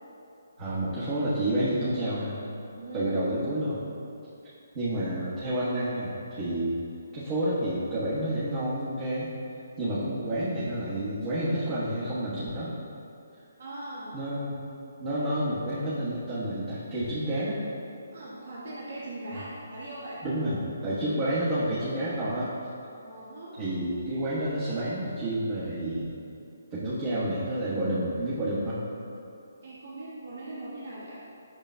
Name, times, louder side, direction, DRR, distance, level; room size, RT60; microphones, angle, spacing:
voice 1, 0.6-2.4 2.9-3.8 4.7-6.8 7.1-9.3 9.8-12.7 14.1-14.5 15.0-17.6 20.2-22.5 23.6-26.1 26.7-28.8, right 1 dB, 30° right, -10 dB, 1.3 m, -29 dB
voice 2, 2.8-3.1 13.6-14.2 15.1-15.2 18.1-20.2 23.0-23.5 29.6-31.2, right 2 dB, 60° right, -8 dB, 1.4 m, -40 dB
8.7 x 6.2 x 2.2 m, 2.8 s
hypercardioid pair, 155°, 0 cm